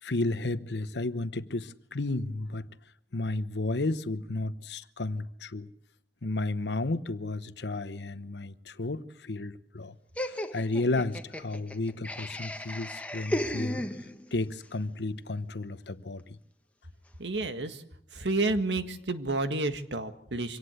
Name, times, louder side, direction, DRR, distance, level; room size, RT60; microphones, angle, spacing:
voice 1, 0.0-2.7 3.1-5.7 6.2-9.9 10.3-16.4, left 2 dB, 75° left, 0.9 m, -33 dB
Laughter, 10.2-14.4, left 1 dB, 10° left, 1.2 m, -35 dB
voice 2, 17.2-17.8 18.1-20.6, right 2 dB, 85° right, 1.7 m, -30 dB
25.0 x 18.0 x 8.1 m
head